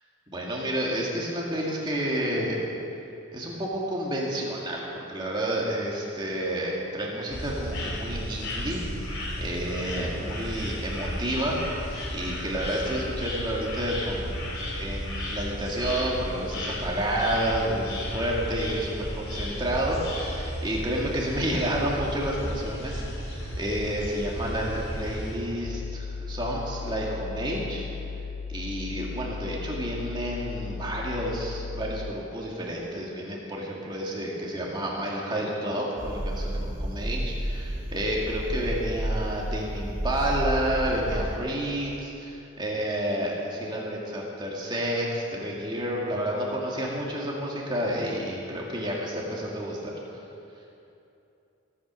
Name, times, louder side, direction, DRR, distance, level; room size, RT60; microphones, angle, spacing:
voice 1, 0.3-2.6 3.3-4.8 5.1-14.4 14.8-27.9 28.5-50.2, right 1 dB, 20° right, -3 dB, 2.2 m, -30 dB
sound 1, 7.3-25.3, equal, 75° left, 3.8 m, -34 dB
sound 2, 25.6-32.1, left 5 dB, 60° left, 0.4 m, -36 dB
sound 3, 36.0-41.4, right 1 dB, 40° right, 2.4 m, -31 dB
17.0 x 9.0 x 6.3 m, 2.8 s
head